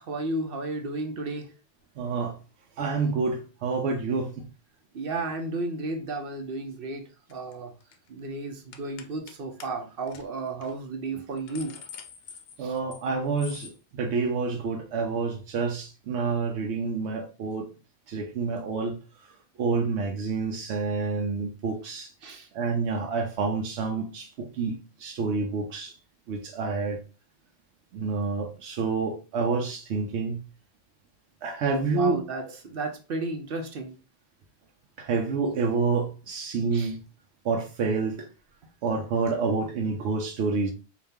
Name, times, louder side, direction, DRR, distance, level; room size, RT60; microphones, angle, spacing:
voice 1, 0.0-1.5 4.9-7.7 8.1-11.8 12.6-12.8 22.2-22.5 31.8-34.0 36.7-36.9, right 2 dB, 60° right, 0.8 m, -33 dB
voice 2, 2.0-2.4 2.8-4.5 12.6-17.7 18.1-19.0 19.6-22.1 22.5-25.9 26.3-27.0 27.9-30.4 31.4-32.2 35.0-37.0 37.4-38.3 38.8-40.7, right 4 dB, 85° right, 0.9 m, -28 dB
sound 1, 7.3-7.5 7.8-8.1 8.7-9.3 9.6-9.7 10.1-10.2 10.6-10.7 11.2-13.1 13.4-13.8, left 7 dB, 70° left, 0.8 m, -45 dB
4.1 x 2.4 x 3.5 m
omnidirectional pair, 1.1 m